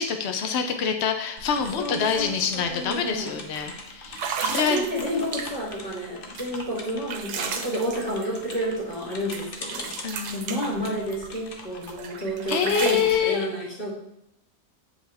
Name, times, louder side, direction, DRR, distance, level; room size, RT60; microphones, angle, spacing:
voice 1, 0.0-4.9 10.0-10.4 12.5-13.4, left 7 dB, 85° left, 5 dB, 0.5 m, -26 dB
sound 1, 1.4-12.9, left 3 dB, 45° left, 0.7 m, -42 dB
voice 2, 1.8-3.3 4.4-13.9, equal, 30° left, -5 dB, 2.2 m, -30 dB
sound 2, 2.1-2.3 2.6-2.9 3.5-3.6 4.1-5.8 6.4-9.1 9.3-11.4 11.8-13.2, right 6 dB, 70° right, 1.2 m, -34 dB
7.5 x 4.9 x 3.5 m, 0.78 s
omnidirectional pair, 1.9 m